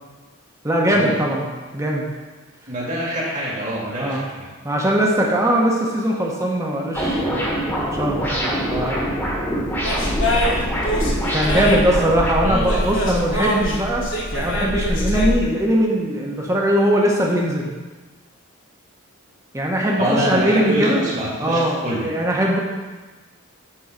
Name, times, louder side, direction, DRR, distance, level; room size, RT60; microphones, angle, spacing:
voice 1, 0.6-1.5 1.7-2.0 4.0-4.2 4.6-7.5 7.8-9.1 11.3-14.1 14.3-17.7 19.5-21.0 21.4-22.6, right 1 dB, 15° right, -2 dB, 1.0 m, -20 dB
voice 2, 2.7-4.5 12.4-12.9 20.0-22.1, equal, 35° right, -5 dB, 2.0 m, -25 dB
sound 1, 6.9-12.3, equal, 10° left, 1.2 m, -25 dB
sound 2, 9.8-15.3, equal, 60° left, 1.3 m, -23 dB
8.5 x 3.9 x 5.2 m, 1.3 s
head